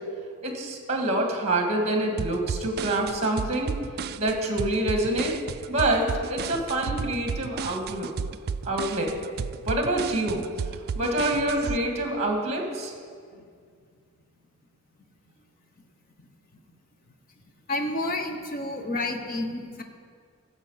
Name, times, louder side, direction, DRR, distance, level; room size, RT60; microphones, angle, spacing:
voice 1, 0.4-3.7 4.2-5.3 5.7-8.1 8.6-9.1 9.7-10.4 11.0-12.9, right 1 dB, 30° right, 2 dB, 1.9 m, -26 dB
sound 1, 2.2-11.8, right 6 dB, 45° right, 0.3 m, -33 dB
voice 2, 17.7-19.8, left 2 dB, 40° left, 5 dB, 1.0 m, -30 dB
15.0 x 7.2 x 5.7 m, 2.1 s
head